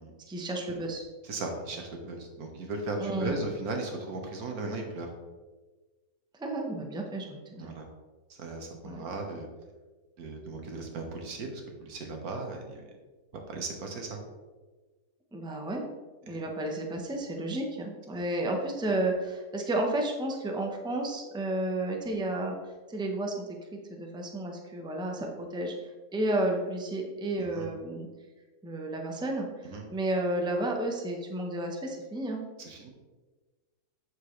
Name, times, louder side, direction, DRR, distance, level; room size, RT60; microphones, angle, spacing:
voice 1, 0.3-1.0 3.0-3.3 6.4-7.7 8.8-9.1 15.3-15.8 16.2-22.5 22.9-25.7 26.1-28.1 28.6-32.4, right 1 dB, 5° right, 1 dB, 0.6 m, -32 dB
voice 2, 1.2-5.1 7.6-7.9 8.4-9.5 10.2-12.8 13.5-14.2 16.3-16.4 27.4-27.7 29.6-29.8 32.6-32.9, right 2 dB, 70° right, 3 dB, 1.7 m, -37 dB
7.9 x 6.7 x 3.2 m, 1.3 s
omnidirectional pair, 1.7 m